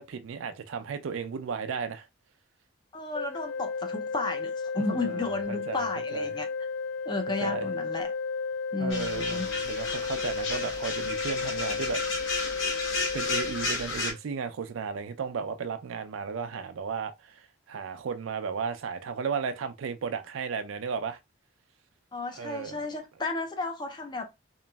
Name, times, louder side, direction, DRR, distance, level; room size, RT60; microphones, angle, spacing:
voice 1, 0.0-2.1 5.0-6.3 7.4-7.7 8.8-12.0 13.1-21.2 22.3-22.8, right 6 dB, 80° right, 0.4 m, -34 dB
voice 2, 2.9-6.5 7.1-8.1 8.7-9.5 22.1-24.2, left 3 dB, 20° left, 0.4 m, -33 dB
Organ, 3.1-14.2, left 4 dB, 85° left, 0.4 m, -33 dB
sound 1, 8.9-14.1, left 3 dB, 70° left, 0.9 m, -33 dB
3.0 x 2.5 x 2.2 m
head